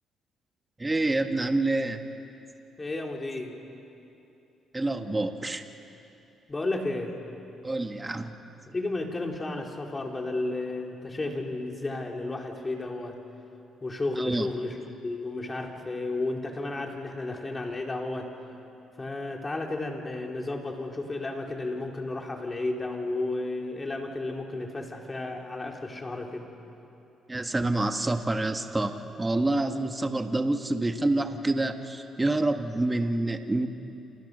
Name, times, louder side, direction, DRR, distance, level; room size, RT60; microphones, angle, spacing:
voice 1, 0.8-2.0 4.7-5.6 7.6-8.3 14.2-14.5 27.3-33.7, right 2 dB, 20° right, 6 dB, 1.7 m, -27 dB
voice 2, 2.8-3.6 6.5-7.2 8.7-13.2 13.8-14.8 15.0-18.3 19.0-26.5, left 2 dB, 25° left, 1 dB, 4.0 m, -32 dB
29.0 x 27.0 x 6.8 m, 2.8 s
cardioid pair, 90°, 0 cm